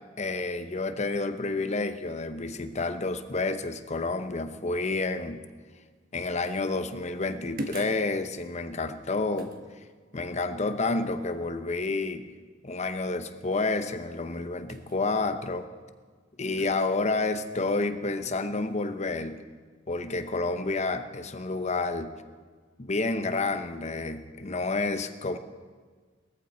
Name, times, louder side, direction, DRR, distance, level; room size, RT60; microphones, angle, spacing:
voice 1, 0.2-5.4 6.1-9.5 10.1-12.2 12.6-15.7 16.4-19.4 19.9-22.1 22.8-25.4, left 3 dB, 40° left, 10 dB, 0.8 m, -29 dB
sound 1, 6.4-6.7 7.6-8.1 9.4-9.6 14.7-15.0 16.6-16.9, right 1 dB, 50° right, 1.2 m, -38 dB
19.0 x 14.0 x 4.4 m, 1.5 s
head